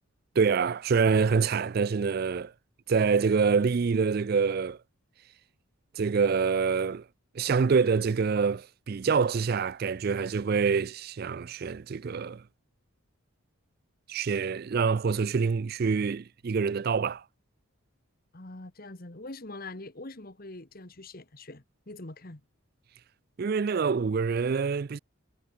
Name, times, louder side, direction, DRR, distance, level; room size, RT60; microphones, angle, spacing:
voice 1, 0.4-2.5 2.9-4.8 5.9-7.1 7.3-12.4 14.1-17.2 23.4-25.0, right 5 dB, 45° right, 0.4 m, -26 dB
voice 2, 18.3-22.4, left 2 dB, 40° left, 1.5 m, -43 dB
head